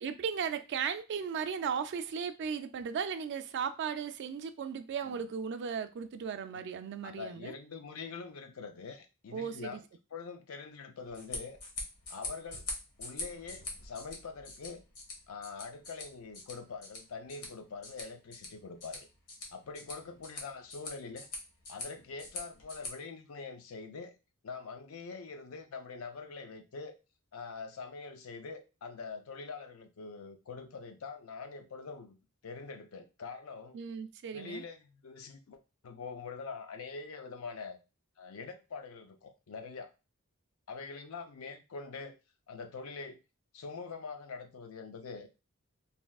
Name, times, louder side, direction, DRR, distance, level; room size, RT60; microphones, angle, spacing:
voice 1, 0.0-7.5 9.3-9.8 33.7-34.6, right 6 dB, 55° right, 0.3 m, -36 dB
voice 2, 7.0-9.8 10.1-11.6 12.1-12.6 13.0-14.8 15.3-19.1 19.5-21.3 21.7-24.1 24.4-26.9 27.3-33.8 34.3-37.8 38.2-39.9 40.7-42.1 42.5-43.2 43.5-45.3, left 4 dB, 70° left, 0.5 m, -44 dB
sound 1, 11.0-22.9, left 3 dB, 85° left, 1.1 m, -44 dB
3.4 x 2.7 x 2.3 m
head